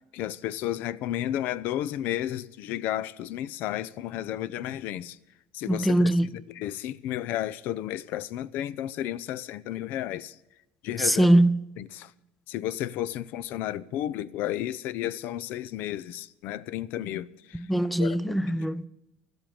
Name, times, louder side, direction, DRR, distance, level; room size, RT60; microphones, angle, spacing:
voice 1, 0.1-5.2 5.5-10.3 10.8-11.3 11.8-12.1 12.5-17.6 18.0-18.2, left 12 dB, 60° left, 0.5 m, -32 dB
voice 2, 5.7-6.4 11.0-11.6 17.5-18.8, right 1 dB, ahead, 0.4 m, -22 dB
14.0 x 8.0 x 8.7 m
cardioid pair, 150°, 4 cm